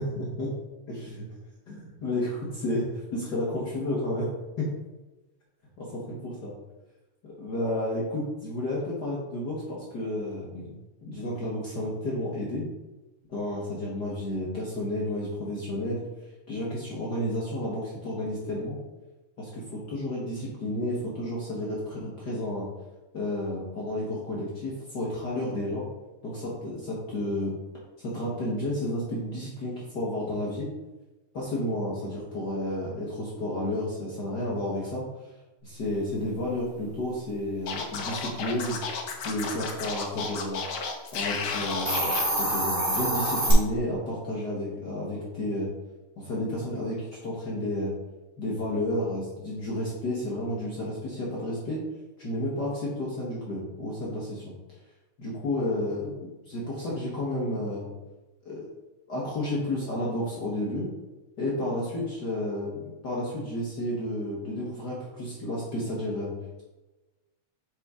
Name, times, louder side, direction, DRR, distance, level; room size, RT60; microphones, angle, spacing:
voice 1, 0.1-0.5 0.9-1.1 1.7-4.3 4.6-4.7 5.8-6.5 7.2-10.7 11.0-12.7 13.3-16.0 16.5-18.8 19.4-22.7 23.1-25.8 26.2-27.5 28.0-30.7 31.3-35.0 35.6-38.8 39.2-40.6 41.1-45.7 46.2-47.9 48.4-51.8 52.2-54.5 55.2-56.2 56.5-57.9 58.4-58.6 59.1-60.9 61.4-66.3, left 1 dB, 50° left, -5 dB, 1.4 m, -31 dB
Scratching (performance technique), 37.7-42.2, left 5 dB, 65° left, 1.3 m, -33 dB
Hiss, 41.7-43.5, right 1 dB, 35° right, 2.7 m, -26 dB
6.6 x 5.4 x 3.7 m, 1.1 s
omnidirectional pair, 3.3 m